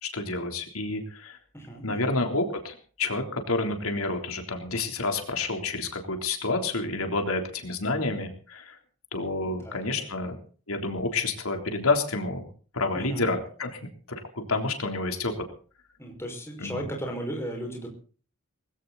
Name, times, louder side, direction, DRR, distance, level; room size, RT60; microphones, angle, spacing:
voice 1, 0.0-1.4 1.8-8.8 9.1-10.4 10.7-12.5 12.7-15.3 16.6-16.8, left 3 dB, 80° left, 5 dB, 3.5 m, -29 dB
voice 2, 1.5-2.1 9.4-10.3 12.9-13.3 16.0-17.9, equal, 10° left, 2 dB, 5.5 m, -36 dB
20.5 x 16.5 x 4.1 m, 0.40 s
head